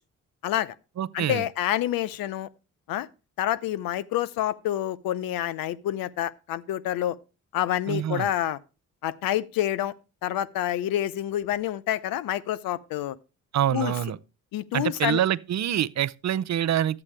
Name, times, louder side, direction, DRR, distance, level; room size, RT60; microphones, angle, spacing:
voice 1, 0.4-0.7 1.1-2.5 2.9-3.1 3.4-7.2 7.5-8.6 9.0-9.9 10.2-13.2 13.7-13.9 14.5-15.2, left 12 dB, 75° left, 0.7 m, -28 dB
voice 2, 1.0-1.5 7.9-8.3 13.5-14.2 14.7-17.0, right 11 dB, 50° right, 0.6 m, -26 dB
11.5 x 8.4 x 3.2 m
supercardioid pair, 55°, 35 cm